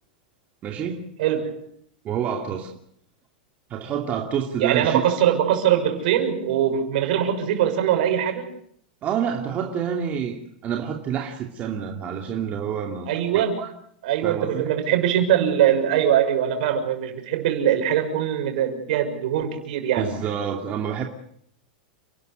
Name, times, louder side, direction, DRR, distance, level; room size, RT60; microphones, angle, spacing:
voice 1, 0.6-1.0 2.0-2.7 3.7-5.0 9.0-13.7 14.2-14.7 20.0-21.0, right 8 dB, 30° right, 2.7 m, -28 dB
voice 2, 1.2-1.6 4.6-8.5 13.1-13.6 14.0-20.1, right 10 dB, 65° right, 6.4 m, -22 dB
30.0 x 12.5 x 9.3 m
supercardioid pair, 135°, 5 cm